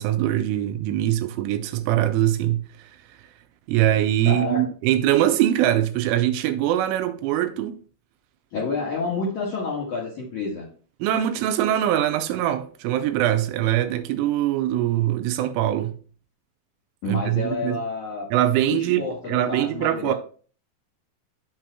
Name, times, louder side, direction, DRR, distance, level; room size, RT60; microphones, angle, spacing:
voice 1, 0.0-3.2 3.7-7.8 11.0-16.0 17.1-17.8 18.3-20.1, right 12 dB, 85° right, 2.9 m, -23 dB
voice 2, 4.3-4.7 8.5-10.7 17.0-18.3 18.7-20.1, left 3 dB, 70° left, 1.8 m, -29 dB
9.2 x 7.4 x 2.2 m
omnidirectional pair, 5.8 m